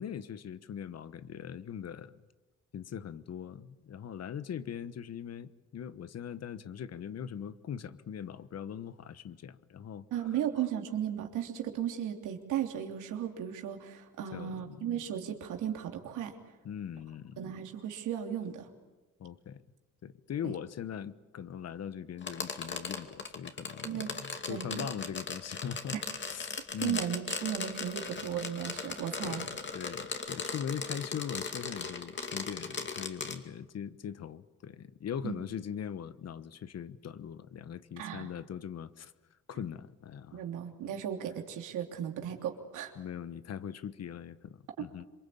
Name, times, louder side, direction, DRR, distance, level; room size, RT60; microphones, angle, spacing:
voice 1, 0.0-2.2 2.7-10.3 14.3-15.0 16.6-17.5 19.2-19.6 20.0-26.0 26.3-27.0 29.2-39.1 39.5-40.4 43.0-45.0, left 8 dB, 55° left, 14 dB, 1.2 m, -41 dB
voice 2, 10.1-16.3 17.4-18.7 20.4-20.5 23.8-24.1 24.5-24.9 25.9-26.0 26.8-29.4 35.2-35.4 38.0-38.3 40.3-42.9 44.8-44.9, right 9 dB, 90° right, 3 dB, 3.2 m, -35 dB
sound 1, 22.2-33.4, left 4 dB, 40° left, 2.5 m, -38 dB
26.5 x 23.0 x 8.7 m, 1.1 s
cardioid pair, 90°, 30 cm